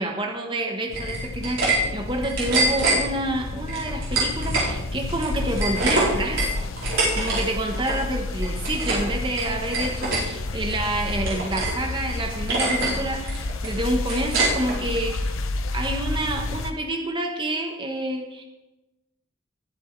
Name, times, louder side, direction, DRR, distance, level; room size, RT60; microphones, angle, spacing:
voice 1, 0.0-6.5 7.2-15.3 15.7-18.4, right 1 dB, 25° right, 3 dB, 1.1 m, -28 dB
sound 1, 0.9-16.7, left 2 dB, 80° left, 0.8 m, -30 dB
sound 2, 0.9-1.8 2.1-3.0 3.7-4.7 5.0-7.4 7.7-8.0 8.4-9.1 9.4-10.2 10.7-11.8 12.1-12.2 12.5-13.0 13.3-14.8, right 3 dB, 75° right, 4.7 m, -25 dB
19.5 x 7.9 x 3.3 m, 1.0 s
head